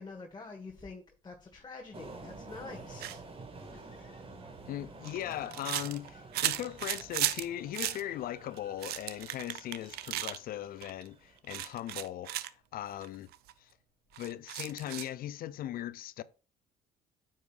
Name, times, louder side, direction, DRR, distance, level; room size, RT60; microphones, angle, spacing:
voice 1, 0.0-3.2 3.7-4.2, left 3 dB, 25° left, 1.6 m, -47 dB
sound 1, 1.9-11.4, right 3 dB, 35° right, 1.9 m, -50 dB
sound 2, 3.0-3.2 4.5-7.4 7.7-8.0 8.6-10.4 10.8-11.1 11.5-12.5 13.0-13.1 13.3-13.5 14.1-15.1, right 14 dB, 70° right, 0.6 m, -35 dB
voice 2, 4.7-13.3 13.6-13.7 14.2-16.2, left 12 dB, 60° left, 0.5 m, -39 dB
9.3 x 7.4 x 2.5 m
supercardioid pair, 70°, 17 cm